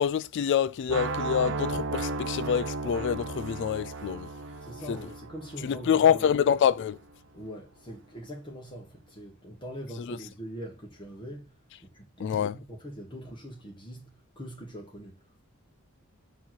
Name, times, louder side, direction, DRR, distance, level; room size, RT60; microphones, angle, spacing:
voice 1, 0.0-4.3 4.9-5.0 5.6-7.0 10.1-10.2 12.2-12.5, left 8 dB, 60° left, 0.3 m, -26 dB
sound 1, 0.9-6.8, right 3 dB, 65° right, 0.6 m, -35 dB
voice 2, 4.6-6.4 7.3-15.3, equal, 25° left, 1.3 m, -43 dB
7.3 x 3.0 x 5.7 m
head